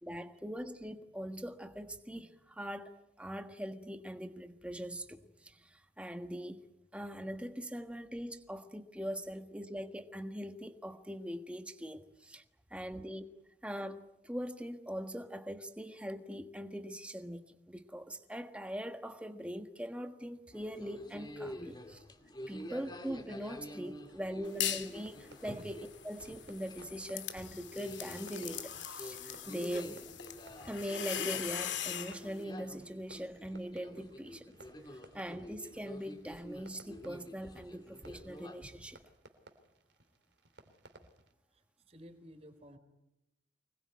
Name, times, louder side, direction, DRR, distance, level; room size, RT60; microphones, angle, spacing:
voice 1, 0.0-2.9 3.2-6.7 6.9-12.4 12.7-13.2 13.6-22.0 22.5-30.1 30.6-34.6 34.9-39.0, equal, 5° right, 1.4 m, -42 dB
sound 1, 20.5-39.1, equal, 20° left, 2.4 m, -49 dB
sound 2, 24.4-25.0 25.4-32.2, left 10 dB, 75° left, 2.3 m, -40 dB
Fireworks, 24.8-41.3, right 2 dB, 65° right, 2.9 m, -61 dB
voice 2, 41.5-42.8, equal, 35° right, 3.9 m, -54 dB
25.0 x 21.0 x 9.5 m
head